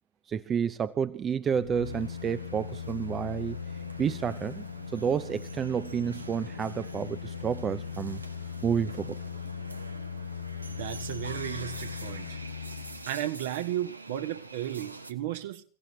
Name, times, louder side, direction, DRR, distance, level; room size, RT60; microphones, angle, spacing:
voice 1, 0.3-3.6 4.0-8.2 8.6-9.2, right 7 dB, 25° right, 0.7 m, -30 dB
sound 1, 1.5-13.1 13.5-13.6, left 8 dB, 65° left, 0.9 m, -39 dB
sound 2, 1.8-15.1, right 3 dB, 80° right, 1.3 m, -45 dB
voice 2, 10.7-12.4 13.1-15.6, right 12 dB, 55° right, 1.7 m, -34 dB
30.0 x 17.0 x 2.8 m
figure-of-eight pair, 90°, 0 cm